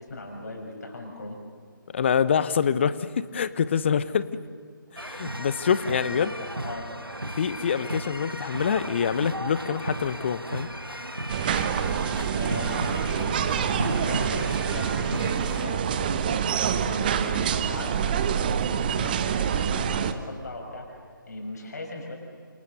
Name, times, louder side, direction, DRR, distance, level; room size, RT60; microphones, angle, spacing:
voice 1, 0.0-1.4 5.2-6.9 12.3-16.3 16.8-22.1, left 2 dB, 50° left, 1 dB, 6.7 m, -39 dB
voice 2, 1.9-4.3 4.9-6.3 7.3-10.7, left 7 dB, 30° left, 15 dB, 0.9 m, -25 dB
sound 1, 5.0-15.7, right 1 dB, 90° right, 1.7 m, -35 dB
sound 2, 11.3-20.1, right 8 dB, 25° right, 1.0 m, -26 dB
27.5 x 27.0 x 6.9 m, 2.1 s
figure-of-eight pair, 150°, 12 cm